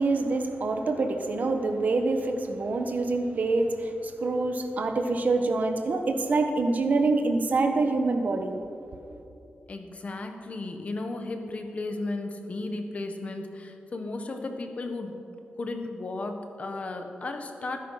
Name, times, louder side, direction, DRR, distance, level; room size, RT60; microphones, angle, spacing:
voice 1, 0.0-8.6, right 3 dB, 50° right, 5 dB, 1.3 m, -26 dB
voice 2, 9.7-15.1 15.6-17.8, left 2 dB, 40° left, 5 dB, 1.4 m, -34 dB
19.5 x 10.5 x 5.8 m, 2.9 s
wide cardioid pair, 180°, 4 cm